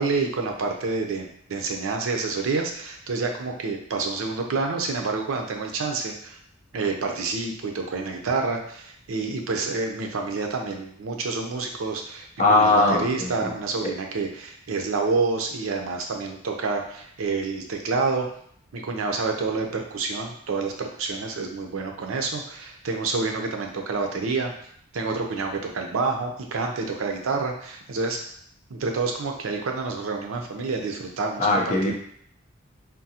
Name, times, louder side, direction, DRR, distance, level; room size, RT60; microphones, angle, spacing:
voice 1, 0.0-6.4 6.7-18.3 18.7-24.5 24.9-28.2 28.7-31.5 31.8-31.9, right 4 dB, 85° right, 3 dB, 0.5 m, -28 dB
voice 2, 12.4-13.5 31.4-31.9, left 2 dB, 35° left, -2 dB, 0.6 m, -20 dB
3.6 x 2.0 x 2.7 m, 0.65 s
head